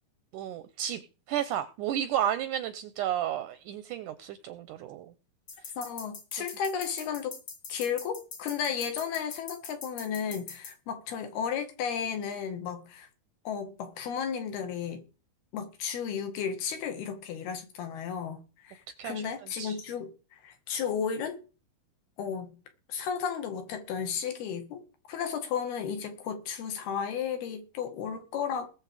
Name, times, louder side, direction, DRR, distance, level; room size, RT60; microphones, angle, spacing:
voice 1, 0.3-1.0 1.3-5.1 19.0-19.8, right 10 dB, 75° right, 2.0 m, -32 dB
sound 1, 5.5-10.7, left 4 dB, 35° left, 2.0 m, -43 dB
voice 2, 5.8-7.3 7.7-13.1 13.5-15.0 15.5-21.4 22.2-22.6 22.9-24.8 25.1-28.7, left 7 dB, 75° left, 4.1 m, -34 dB
20.0 x 7.5 x 4.9 m
omnidirectional pair, 4.6 m